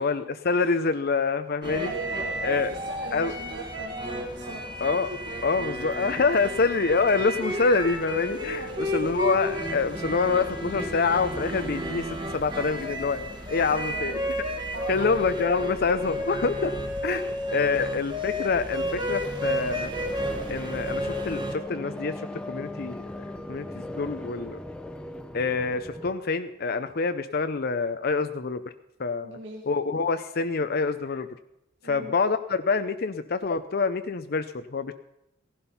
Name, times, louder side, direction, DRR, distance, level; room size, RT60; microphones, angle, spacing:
voice 1, 0.0-1.9 2.4-2.7 3.1-3.3 4.8-5.1 5.4-14.2 14.9-16.7 17.0-19.9 20.5-24.6 25.3-28.6 29.0-29.4 29.7-31.3 31.8-34.9, left 4 dB, 50° left, 10 dB, 0.6 m, -26 dB
sound 1, 1.6-21.6, equal, 25° right, 1.7 m, -32 dB
voice 2, 1.8-4.8 8.6-9.1 13.7-14.3 14.7-15.7 16.3-16.4 17.6-17.7 29.2-29.7 31.8-32.2, right 2 dB, 75° right, 0 dB, 1.8 m, -39 dB
sound 2, 18.7-26.1, left 1 dB, 5° left, 0.8 m, -38 dB
16.0 x 11.5 x 5.6 m, 0.86 s
head